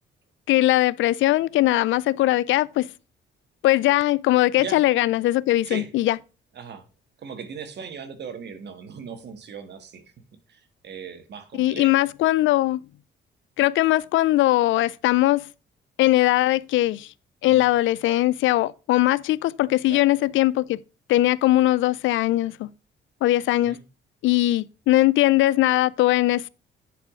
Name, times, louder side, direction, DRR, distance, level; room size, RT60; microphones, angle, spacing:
voice 1, 0.5-2.9 3.6-6.2 11.6-12.8 13.6-15.5 16.0-17.1 17.4-20.8 21.1-22.7 23.2-23.8 24.2-26.5, left 16 dB, 75° left, 0.4 m, -20 dB
voice 2, 6.5-6.9 7.2-10.0 10.5-12.1 17.4-17.7 19.9-20.3 23.6-23.8, right 6 dB, 60° right, 1.6 m, -38 dB
9.7 x 4.9 x 3.6 m
cardioid pair, 90°, 20 cm